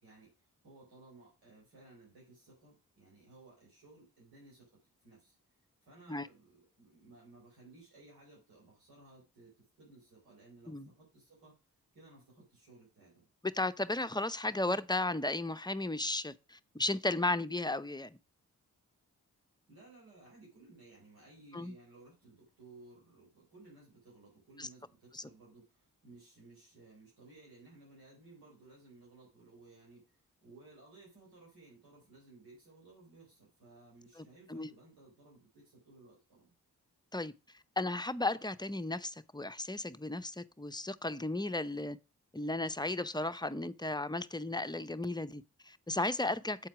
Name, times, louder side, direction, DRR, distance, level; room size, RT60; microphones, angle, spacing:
voice 1, 0.0-4.7 5.0-5.4 5.8-11.6 11.9-13.3 19.7-36.5, right 2 dB, 85° right, 4.0 m, -58 dB
voice 2, 13.4-18.2 21.5-21.7 24.6-24.7 25.1-25.2 34.2-34.7 37.1-37.3 37.8-42.0 42.3-46.7, left 2 dB, 10° left, 0.7 m, -35 dB
8.1 x 4.4 x 6.0 m
supercardioid pair, 45°, 36 cm